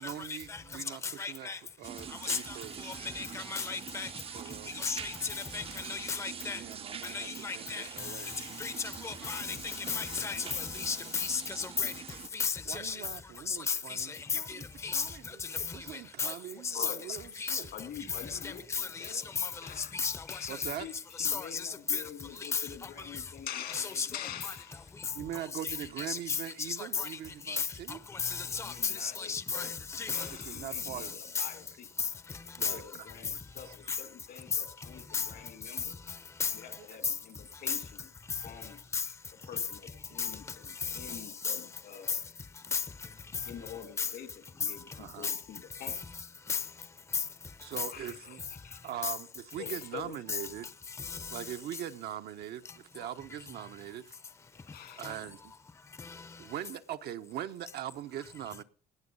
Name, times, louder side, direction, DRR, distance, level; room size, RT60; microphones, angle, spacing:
voice 1, 0.0-1.5 1.8-2.9 4.3-4.9 6.4-8.3 12.7-17.7 20.5-20.9 25.1-28.0 30.3-31.2 32.6-33.1 33.6-33.7 36.8-36.9 45.0-45.3 47.6-48.4 48.8-50.7 51.3-54.2 54.9-55.5 56.4-58.6, right 11 dB, 70° right, 0.9 m, -42 dB
voice 2, 1.2-1.6 2.2-2.4 3.2-4.1 4.8-5.1 5.5-5.6 5.9-6.6 7.1-7.8 8.6-8.7 9.0-9.5 9.9-11.9 12.3-13.0 13.5-14.1 14.3-14.6 14.8-15.0 16.2-16.3 16.8-16.9 17.4-17.6 18.7-18.9 19.9-20.1 21.2-21.6 21.9-22.0 22.5-22.6 23.7-24.1 26.0-26.4 27.0-27.1 27.5-27.6 28.2-28.7 29.0-29.7 29.9-30.3 31.4-31.5 32.6-32.7 35.1-35.2 36.4-36.5 37.7-37.8 38.9-39.0 41.4-41.5 42.7-42.8 44.0-44.1 45.2-45.3 46.5-46.6, left 5 dB, 15° left, 0.7 m, -33 dB
sound 1, 1.8-12.3, right 7 dB, 35° right, 0.6 m, -44 dB
voice 3, 16.7-17.3 17.7-20.0 20.3-24.9 28.4-29.7 30.1-31.9 32.7-36.0 36.5-38.1 38.4-39.1 39.5-42.2 43.5-46.0 47.9-49.0 49.6-50.2 54.7-55.1, left 9 dB, 70° left, 2.3 m, -46 dB
18.5 x 7.1 x 5.4 m
cardioid pair, 110°, 17 cm